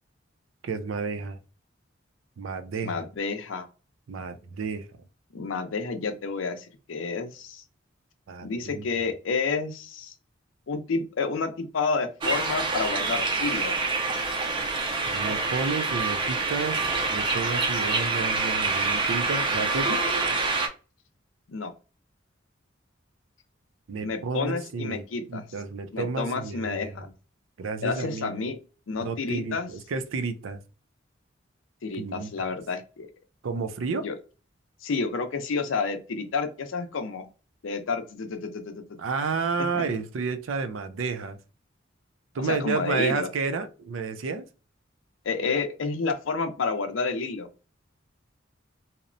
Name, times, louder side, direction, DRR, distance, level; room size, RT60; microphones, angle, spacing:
voice 1, 0.6-1.4 2.4-3.1 4.1-4.9 8.3-8.8 15.1-16.8 17.1-20.0 23.9-25.0 25.3-26.9 27.6-28.4 29.0-30.6 32.0-32.5 33.4-34.1 39.0-41.4 42.3-44.4, right 4 dB, 90° right, 0.4 m, -31 dB
voice 2, 2.8-3.7 5.3-7.6 8.4-10.1 10.7-13.8 21.5-21.7 24.0-25.4 25.9-27.1 27.8-28.6 28.9-29.7 31.8-33.1 34.0-34.1 34.8-37.3 37.6-38.8 39.7-39.8 42.4-43.3 45.2-47.5, left 4 dB, 85° left, 0.5 m, -30 dB
sound 1, 12.2-20.7, right 3 dB, 25° right, 0.4 m, -26 dB
2.8 x 2.0 x 2.5 m
head